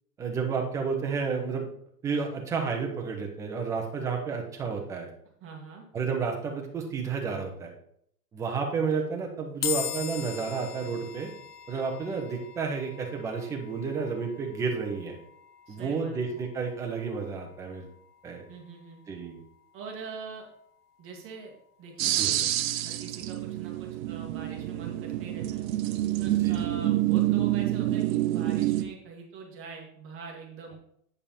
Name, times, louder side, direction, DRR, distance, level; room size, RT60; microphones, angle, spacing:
voice 1, 0.2-1.7 2.0-5.1 5.9-7.7 8.3-11.3 11.7-15.2 15.7-17.9 18.2-18.4 19.1-19.4 22.2-22.5 26.4-26.7, right 5 dB, 5° right, 1 dB, 0.4 m, -31 dB
voice 2, 5.4-5.8 15.7-16.3 18.5-19.0 19.7-20.4 21.0-21.5 21.8-25.6 26.2-30.8, right 5 dB, 25° right, 0 dB, 1.7 m, -43 dB
sound 1, 9.6-23.0, left 11 dB, 70° left, 1.1 m, -42 dB
sound 2, 22.0-28.8, right 14 dB, 55° right, 0.8 m, -27 dB
8.7 x 5.4 x 4.1 m, 0.68 s
hypercardioid pair, 145°, 48 cm